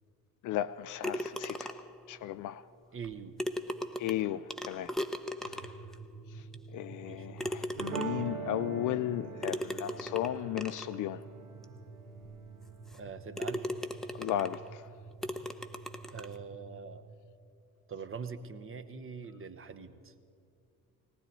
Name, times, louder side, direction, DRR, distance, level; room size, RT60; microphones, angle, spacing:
voice 1, 0.4-1.7 2.1-2.6 4.0-4.9 6.7-11.2 14.2-14.8, left 12 dB, 50° left, 0.4 m, -35 dB
sound 1, 1.0-2.0 3.0-3.1 3.4-5.9 6.5-6.6 7.4-8.3 9.4-10.9 11.6-11.7 12.2-12.3 12.9-13.1 13.4-14.7 15.2-16.4, equal, ahead, 0.7 m, -38 dB
voice 2, 2.9-3.4 7.0-7.5 12.9-13.7 16.1-17.1 17.9-20.1, right 5 dB, 30° right, 0.9 m, -43 dB
sound 2, 5.4-17.1, right 3 dB, 60° right, 1.7 m, -50 dB
sound 3, 7.8-12.8, right 6 dB, 90° right, 0.7 m, -43 dB
19.0 x 18.5 x 4.0 m
figure-of-eight pair, 45°, 42 cm